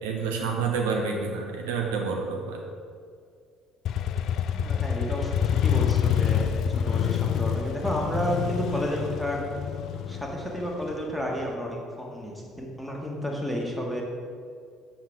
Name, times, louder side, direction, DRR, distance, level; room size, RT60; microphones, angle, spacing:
voice 1, 0.0-2.6, right 5 dB, 65° right, 1 dB, 0.7 m, -28 dB
Motorcycle, 3.8-11.5, left 8 dB, 50° left, 0.3 m, -27 dB
voice 2, 4.5-6.5 6.8-9.5 10.1-14.0, equal, 5° left, -1 dB, 1.6 m, -31 dB
7.2 x 7.1 x 3.6 m, 2.2 s
figure-of-eight pair, 55°, 0 cm